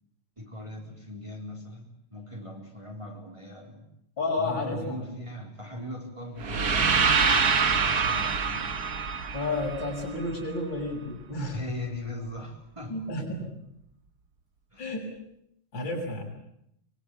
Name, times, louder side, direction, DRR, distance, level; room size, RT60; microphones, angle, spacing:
voice 1, 0.4-3.9 4.4-8.7 11.5-13.0 14.7-14.9, left 1 dB, 15° right, 1 dB, 3.8 m, -39 dB
voice 2, 4.2-5.0 9.3-11.6 12.9-13.5 14.8-15.1 15.7-16.2, left 2 dB, 60° left, 0 dB, 7.4 m, -31 dB
sound 1, 6.4-10.5, right 5 dB, 50° right, 2.0 m, -25 dB
24.5 x 23.0 x 8.5 m, 0.77 s
omnidirectional pair, 2.3 m